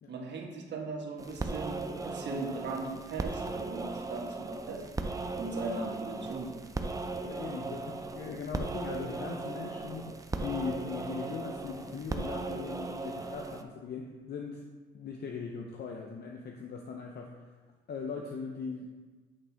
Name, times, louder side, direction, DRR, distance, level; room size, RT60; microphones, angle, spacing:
voice 1, 0.1-4.8 5.4-6.5, right 3 dB, 60° right, 1 dB, 1.3 m, -38 dB
sound 1, 1.2-13.6, right 3 dB, 15° right, 0.5 m, -37 dB
voice 2, 7.2-14.6 14.9-17.3 17.9-18.9, left 5 dB, 55° left, 1 dB, 0.7 m, -39 dB
8.7 x 4.3 x 3.4 m, 1.4 s
cardioid pair, 90°, 20 cm